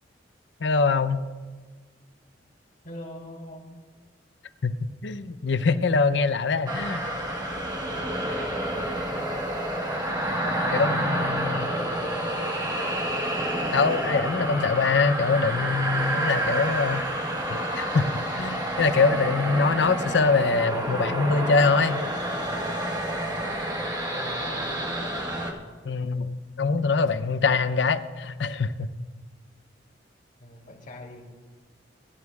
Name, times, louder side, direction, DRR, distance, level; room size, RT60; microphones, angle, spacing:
voice 1, 0.6-1.3 4.6-4.8 5.0-7.1 10.7-11.7 13.7-17.1 17.5-18.1 18.4-22.0 25.8-28.9, left 4 dB, 70° left, 12 dB, 0.6 m, -24 dB
voice 2, 2.8-3.8 9.1-9.2 10.4-13.0 18.6-19.4 23.3-23.8 24.1-24.8 30.4-31.3, left 1 dB, 50° left, -3 dB, 3.1 m, -42 dB
sound 1, 6.7-25.5, right 1 dB, 25° right, 1.4 m, -29 dB
24.5 x 11.0 x 2.4 m, 1.4 s
head